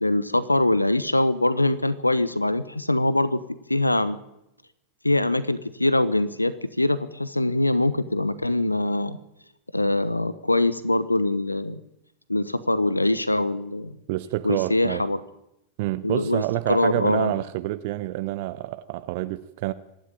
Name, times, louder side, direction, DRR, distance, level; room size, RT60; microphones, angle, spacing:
voice 1, 0.0-3.4 3.7-4.2 5.0-9.2 9.7-11.8 12.3-13.9 14.4-15.2 16.0-16.4 16.7-17.3, left 2 dB, 85° left, 1.0 m, -23 dB
voice 2, 14.1-15.0 15.8-19.7, right 17 dB, 50° right, 0.8 m, -28 dB
25.5 x 12.0 x 9.0 m
figure-of-eight pair, 90°, 0 cm